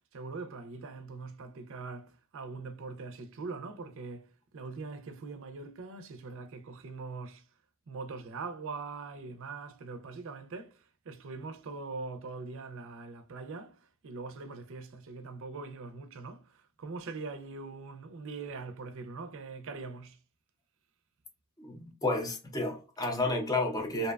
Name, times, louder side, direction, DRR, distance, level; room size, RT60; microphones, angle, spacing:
voice 1, 0.0-7.4 7.9-20.2, right 4 dB, 65° right, 0.4 m, -42 dB
voice 2, 21.6-24.1, left 2 dB, 15° left, 0.5 m, -31 dB
2.7 x 2.1 x 2.2 m
head